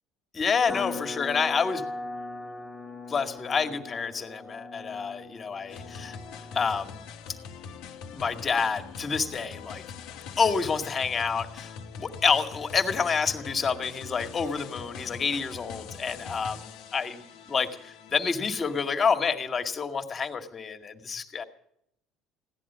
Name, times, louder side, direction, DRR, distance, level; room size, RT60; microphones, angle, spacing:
voice 1, 0.3-1.8 3.1-6.2 6.5-7.0 8.1-9.8 10.4-11.7 12.0-17.2 17.5-21.4, left 5 dB, 40° left, 5 dB, 2.0 m, -28 dB
sound 1, 0.7-6.9, left 2 dB, 5° left, 1.6 m, -39 dB
sound 2, 5.7-19.2, left 6 dB, 75° left, 1.2 m, -43 dB
16.5 x 11.0 x 7.4 m, 0.74 s
supercardioid pair, 75°, 0 cm